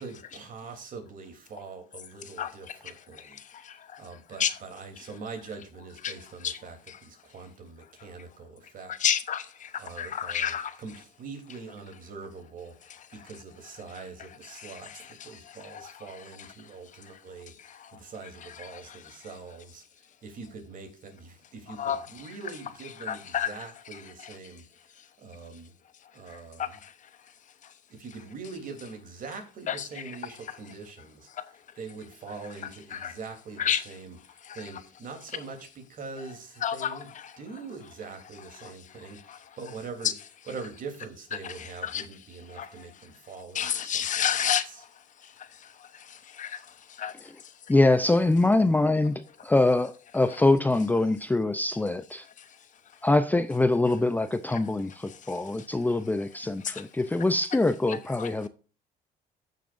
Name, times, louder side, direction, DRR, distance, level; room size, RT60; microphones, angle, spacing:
voice 1, 0.0-3.4 4.0-6.8 7.0-8.9 9.8-10.5 10.8-12.7 13.1-19.8 20.2-24.6 25.2-25.7 26.1-26.7 28.0-31.3 31.8-34.2 34.5-35.6 35.9-37.1 37.4-40.1 40.5-44.0 55.1-55.3, right 4 dB, 55° right, 3.2 m, -43 dB
voice 2, 2.2-4.6 5.0-5.1 6.0-7.0 8.0-8.1 8.9-11.0 12.8-13.3 13.9-19.4 21.7-22.4 22.8-24.6 25.0-25.1 26.0-27.3 27.6-27.7 29.7-30.7 31.3-31.6 32.5-33.2 33.6-34.0 34.4-34.8 36.2-36.3 36.6-37.4 38.4-39.7 40.0-40.1 41.3-42.1 42.5-43.1 43.5-47.6 50.3-50.5 52.2-53.0 54.5-54.7 55.0-55.9 56.6-56.9 57.9-58.5, left 9 dB, 50° left, 0.9 m, -35 dB
voice 3, 47.7-52.2 53.0-58.5, left 2 dB, 10° left, 0.5 m, -24 dB
15.0 x 6.6 x 2.6 m
cardioid pair, 110°, 17 cm